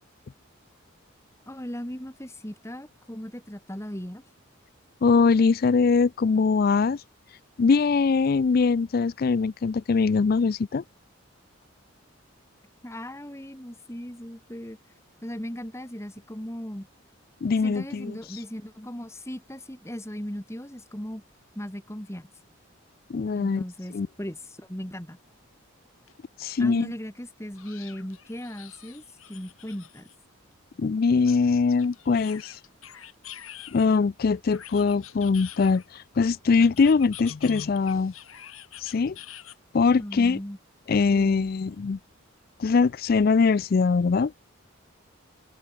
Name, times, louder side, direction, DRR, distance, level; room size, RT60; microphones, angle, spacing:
voice 1, 1.5-4.2 12.8-14.8 15.2-16.9 17.6-21.2 21.6-22.3 23.4-25.2 26.6-30.1 39.9-40.6, equal, 15° left, 2.2 m, -37 dB
voice 2, 5.0-7.0 7.6-10.8 17.4-18.2 23.1-23.6 23.9-24.1 26.4-26.9 30.8-32.5 33.7-38.1 38.8-39.2 39.7-40.4 40.9-42.0 42.6-44.3, left 4 dB, 45° left, 0.4 m, -22 dB
sound 1, 26.1-26.2 26.5-26.6 27.6-30.2 31.3-34.0 34.5-36.0 36.6-39.6, left 11 dB, 85° left, 4.3 m, -46 dB
open air
head